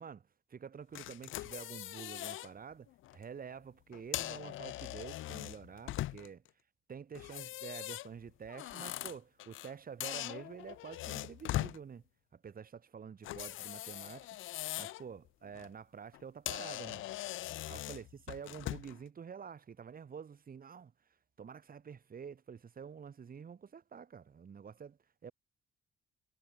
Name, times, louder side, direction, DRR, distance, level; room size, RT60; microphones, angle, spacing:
voice 1, 0.0-6.4 6.9-12.0 12.3-14.3 14.8-17.0 17.7-20.9 21.4-25.3, right 6 dB, 45° right, 7.0 m, -48 dB
Door Creak, 1.0-2.5 2.9-3.2 3.9-6.5 7.2-9.7 10.0-11.8 13.2-15.0 15.4-15.7 16.1-16.2 16.5-19.0, left 15 dB, 80° left, 0.9 m, -41 dB
cardioid pair, 90°, 20 cm